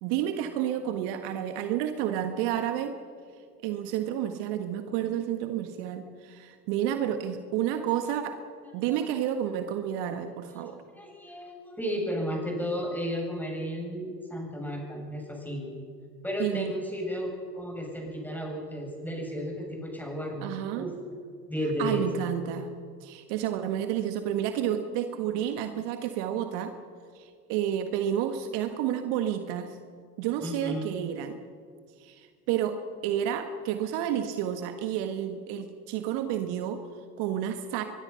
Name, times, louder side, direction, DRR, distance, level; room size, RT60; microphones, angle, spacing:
voice 1, 0.0-2.9 3.6-8.4 8.7-10.8 16.4-16.7 20.4-20.9 21.8-22.7 23.0-26.7 27.1-29.8 30.2-31.4 32.0-37.8, right 10 dB, 55° right, 7 dB, 1.7 m, -30 dB
voice 2, 10.5-15.7 16.2-20.9 21.5-22.1 30.4-30.9, equal, 5° left, 0 dB, 7.8 m, -33 dB
24.0 x 22.0 x 5.8 m, 2.1 s
hypercardioid pair, 80°, 48 cm